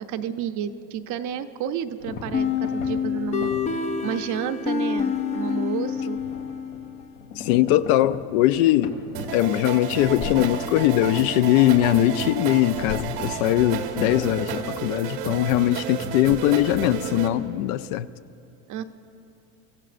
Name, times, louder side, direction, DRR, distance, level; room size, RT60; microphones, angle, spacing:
voice 1, 0.0-6.2 18.7-18.8, right 9 dB, 40° right, 0.7 m, -31 dB
sound 1, 2.0-2.9 3.4-3.7 4.1-4.2 5.0-5.4 5.9-6.4 6.7-6.8 7.2-8.2 8.5-8.6 8.8-10.6 11.1-12.2 12.7-13.7 14.1-15.0 15.3-15.6 16.1-17.1, left 5 dB, 90° left, 2.4 m, -36 dB
sound 2, 2.3-7.0, left 6 dB, 15° left, 0.4 m, -27 dB
voice 2, 7.4-9.0 9.3-18.1, left 14 dB, 65° left, 0.6 m, -21 dB
sound 3, 9.1-17.3, right 8 dB, 80° right, 1.4 m, -32 dB
25.5 x 14.5 x 2.5 m
supercardioid pair, 115°, 45 cm